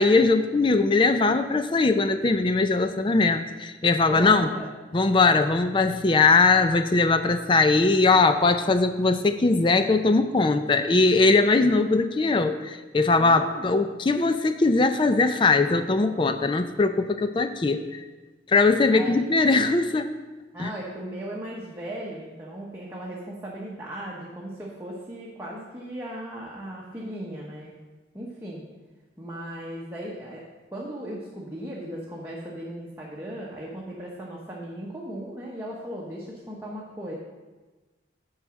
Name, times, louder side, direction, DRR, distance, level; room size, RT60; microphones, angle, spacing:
voice 1, 0.0-4.5 4.9-17.8 18.5-20.1 20.6-20.7, left 3 dB, 25° left, 9 dB, 0.4 m, -21 dB
voice 2, 4.1-4.8 13.2-13.8 18.9-19.2 20.5-27.7 28.1-28.6 29.2-30.4 30.7-37.1, right 1 dB, 15° right, -5 dB, 1.0 m, -37 dB
8.9 x 4.8 x 6.3 m, 1.2 s
head